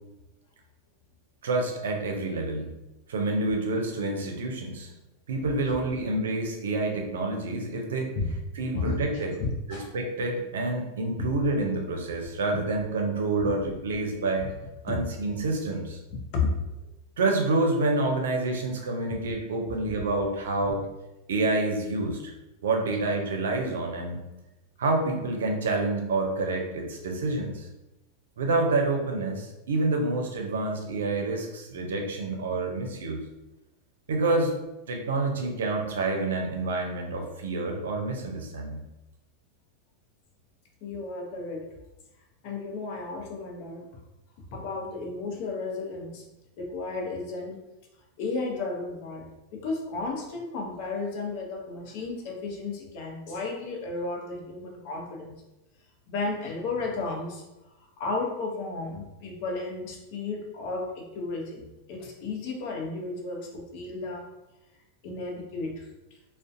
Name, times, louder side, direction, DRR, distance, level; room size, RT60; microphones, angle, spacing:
voice 1, 1.4-2.7 3.1-4.9 5.3-8.1 8.5-9.3 9.7-14.5 14.8-16.0 17.2-20.8 21.3-22.3 22.6-24.2 24.8-27.7 28.4-33.2 34.1-34.6 34.9-38.8, right 2 dB, 85° right, 2 dB, 0.5 m, -28 dB
voice 2, 9.4-9.9 11.2-11.3 16.3-16.5 40.8-41.6 42.4-43.9 44.5-46.2 46.6-47.6 48.2-55.4 56.1-57.4 58.0-64.3 65.0-65.9, left 3 dB, 55° left, 1 dB, 0.6 m, -33 dB
2.4 x 2.1 x 2.5 m, 0.96 s
hypercardioid pair, 115°, 0 cm